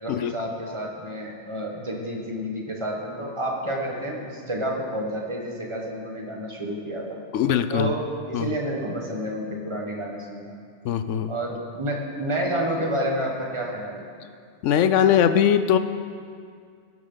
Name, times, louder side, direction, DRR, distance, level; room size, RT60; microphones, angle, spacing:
voice 1, 0.0-7.0 7.7-10.5 11.3-14.1, right 1 dB, 25° right, -1 dB, 1.4 m, -29 dB
voice 2, 7.3-7.9 8.3-8.5 10.8-11.3 14.6-15.8, left 9 dB, 85° left, 11 dB, 0.9 m, -20 dB
18.0 x 7.9 x 3.9 m, 2.2 s
omnidirectional pair, 1.2 m